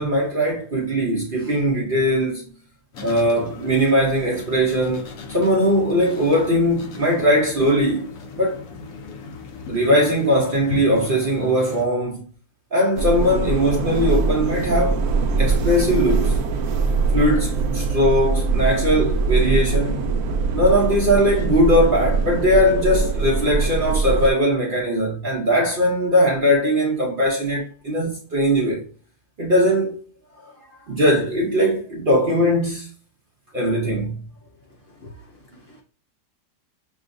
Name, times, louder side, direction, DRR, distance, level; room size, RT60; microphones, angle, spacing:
voice 1, 0.0-2.4 3.0-8.1 8.4-8.6 9.7-12.3 12.7-15.0 15.4-16.4 17.1-20.0 20.5-28.8 29.4-30.0 30.4-32.9 33.5-34.2, equal, 50° right, 0.6 m, -20 dB
sound 1, 2.9-11.9, left 4 dB, 65° left, 1.0 m, -37 dB
sound 2, 13.0-24.3, right 4 dB, 75° right, 1.0 m, -22 dB
voice 2, 35.0-35.8, left 1 dB, 80° left, 0.5 m, -46 dB
6.2 x 2.3 x 2.5 m
omnidirectional pair, 1.8 m